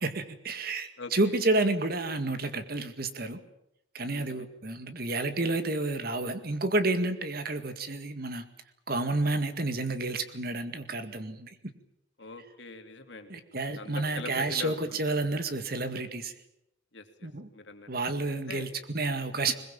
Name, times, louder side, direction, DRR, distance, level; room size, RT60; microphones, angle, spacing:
voice 1, 0.0-3.4 3.9-8.4 8.9-11.6 13.3-16.3 17.2-17.5 17.9-19.5, right 2 dB, 50° right, 10 dB, 2.0 m, -30 dB
voice 2, 4.1-4.5 12.2-13.4 13.8-15.0 16.9-17.9 18.5-18.7, left 3 dB, 65° left, 6 dB, 2.9 m, -43 dB
21.5 x 21.5 x 8.7 m, 0.81 s
head